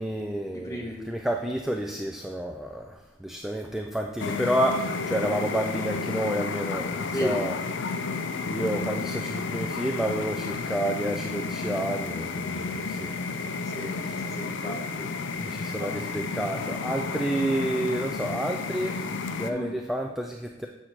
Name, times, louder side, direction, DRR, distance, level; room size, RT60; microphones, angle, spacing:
voice 1, 0.0-7.6 8.5-13.4 14.0-14.2 15.4-20.7, right 1 dB, ahead, 2 dB, 0.3 m, -30 dB
voice 2, 0.5-1.0 7.1-7.4 13.6-13.9 14.2-15.9 19.5-19.7, equal, 20° left, -4 dB, 1.4 m, -35 dB
sound 1, 4.2-19.5, left 4 dB, 75° left, 0.4 m, -32 dB
7.9 x 6.2 x 2.9 m, 1.0 s
head